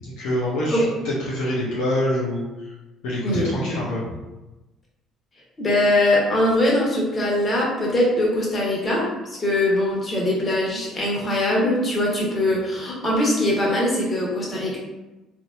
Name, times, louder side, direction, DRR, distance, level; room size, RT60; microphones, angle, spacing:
voice 1, 0.0-2.7 3.0-4.1, left 1 dB, 65° left, -6 dB, 0.7 m, -26 dB
voice 2, 5.6-14.8, left 1 dB, 30° left, -4 dB, 1.4 m, -22 dB
3.9 x 2.8 x 2.5 m, 1.0 s
figure-of-eight pair, 50°, 0 cm